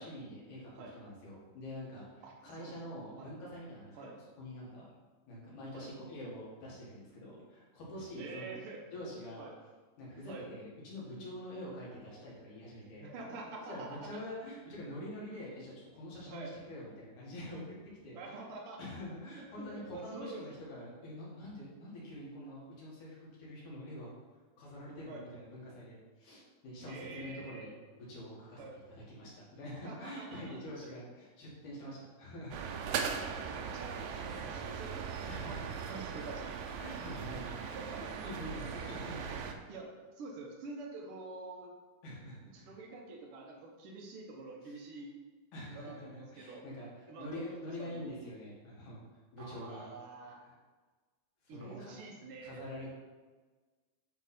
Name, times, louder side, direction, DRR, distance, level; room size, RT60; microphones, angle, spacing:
voice 1, 0.0-4.9 5.3-8.5 8.9-9.5 10.0-13.1 13.7-17.8 18.0-18.3 18.8-24.1 24.6-28.8 29.1-32.7 35.3-35.8 36.8-39.6 42.0-42.7 44.6-44.8 45.5-46.9 47.2-49.0 49.3-49.9 50.4-50.5 51.4-52.0 52.4-52.9, left 1 dB, 65° left, -6 dB, 3.3 m, -46 dB
voice 2, 2.2-2.7 3.2-3.3 3.9-4.2 5.7-5.9 8.2-8.8 9.4-9.6 10.3-10.5 13.0-14.1 15.2-15.4 16.3-16.5 18.1-18.9 19.4-20.4 25.1-25.2 26.8-27.7 28.6-28.8 29.8-30.6 33.2-36.6 37.7-38.0 39.7-41.7 42.5-45.1 45.7-46.6 47.1-48.1 49.4-50.4 51.5-52.6, right 3 dB, 70° right, -1 dB, 1.3 m, -47 dB
sound 1, 32.5-39.5, right 6 dB, 85° right, 2.3 m, -39 dB
9.1 x 3.7 x 4.3 m, 1.3 s
omnidirectional pair, 3.9 m